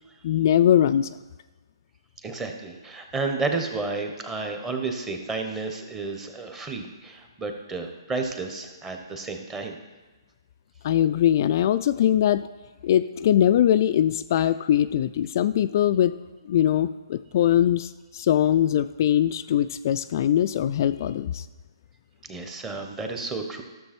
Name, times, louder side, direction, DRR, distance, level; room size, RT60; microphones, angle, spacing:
voice 1, 0.2-1.1 10.8-12.5 12.8-16.2 16.5-21.5, left 11 dB, 45° left, 11 dB, 0.3 m, -21 dB
voice 2, 2.2-9.8 22.3-23.6, right 3 dB, 15° right, 4 dB, 1.1 m, -31 dB
13.0 x 6.8 x 4.4 m, 1.3 s
hypercardioid pair, 140°, 3 cm